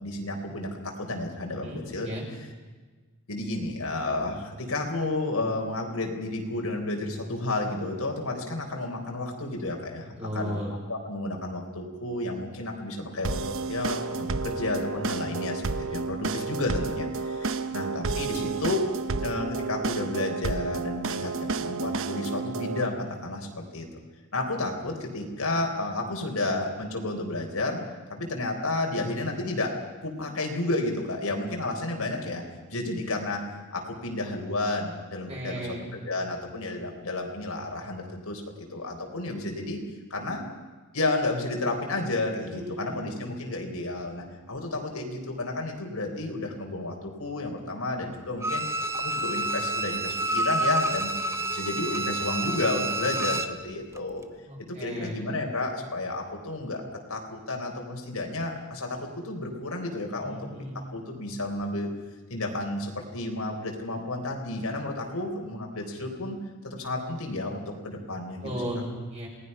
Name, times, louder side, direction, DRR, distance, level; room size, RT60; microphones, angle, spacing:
voice 1, 0.0-2.1 3.3-10.6 10.9-18.9 19.2-24.0 24.3-27.8 28.1-29.7 30.0-32.4 32.7-33.4 33.7-39.8 40.1-40.4 40.9-48.6 48.9-51.1 51.5-54.2 54.6-56.8 57.1-60.4 60.9-61.9 62.3-66.4 66.6-68.6, left 2 dB, 75° left, 2 dB, 3.9 m, -31 dB
voice 2, 1.6-2.3 10.2-10.7 35.3-35.9 42.5-43.1 54.5-55.2 60.2-60.8 68.4-69.3, equal, 30° right, -3 dB, 7.0 m, -35 dB
sound 1, 13.2-22.8, right 4 dB, 65° right, 1.1 m, -31 dB
Bowed string instrument, 48.4-53.6 54.0-54.1, right 2 dB, 15° right, 1.0 m, -28 dB
28.0 x 19.0 x 5.6 m, 1.3 s
head